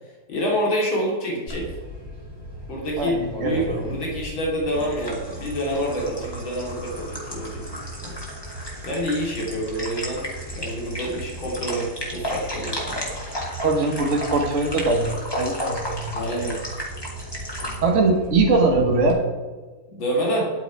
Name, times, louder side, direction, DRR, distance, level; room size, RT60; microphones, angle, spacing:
voice 1, 0.3-1.7 2.7-8.1 8.8-13.0 16.1-16.6 19.9-20.5, equal, 80° left, -2 dB, 3.7 m, -27 dB
sound 1, 1.5-19.1, equal, 10° left, 2.4 m, -33 dB
voice 2, 3.0-3.6 13.6-16.2 17.8-19.2, right 3 dB, 45° right, 1 dB, 1.5 m, -21 dB
10.5 x 9.1 x 4.7 m, 1.4 s
omnidirectional pair, 2.1 m